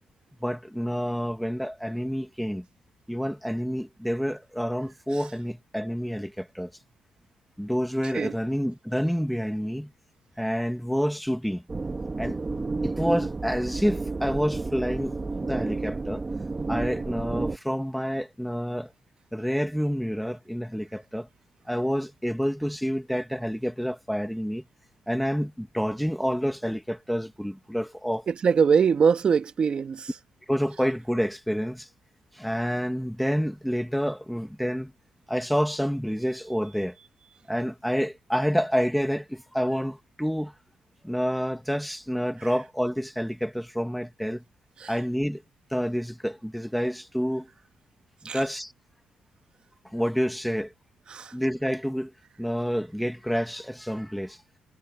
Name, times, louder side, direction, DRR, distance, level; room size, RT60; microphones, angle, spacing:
voice 1, 0.4-2.6 3.1-6.7 7.6-9.9 10.4-11.6 12.2-12.4 12.8-15.2 15.4-16.2 16.7-18.9 19.3-21.3 21.7-24.6 25.1-28.3 30.5-31.9 32.3-34.9 35.3-37.0 37.5-40.5 41.0-44.4 44.9-45.4 45.7-47.5 48.2-48.7 49.9-50.7 51.3-52.1 52.4-54.4, equal, ahead, 2.3 m, -28 dB
sound 1, 11.7-17.6, right 3 dB, 20° right, 1.6 m, -31 dB
voice 2, 28.3-30.1 44.8-44.9 48.2-48.4 51.1-51.3, right 6 dB, 40° right, 1.8 m, -23 dB
cardioid pair, 115°, 2 cm